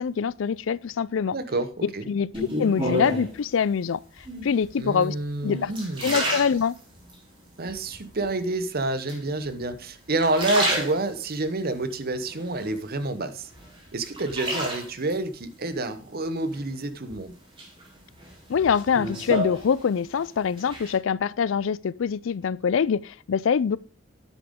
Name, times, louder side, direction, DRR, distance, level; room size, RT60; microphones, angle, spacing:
voice 1, 0.0-1.4 2.1-4.0 4.4-5.2 5.4-5.7 6.0-6.8 18.5-23.8, left 6 dB, 65° left, 0.4 m, -24 dB
voice 2, 1.3-2.1 4.8-6.2 7.6-13.5 13.9-17.3, right 2 dB, 50° right, 1.0 m, -28 dB
sound 1, 2.3-3.4 4.2-4.7 5.2-7.2 7.7-8.3 9.1-9.8 10.1-11.4 11.9-13.1 13.5-15.2 16.5-17.1 17.6-20.2 20.4-21.0, equal, 25° right, 3.3 m, -31 dB
10.0 x 7.7 x 3.7 m
head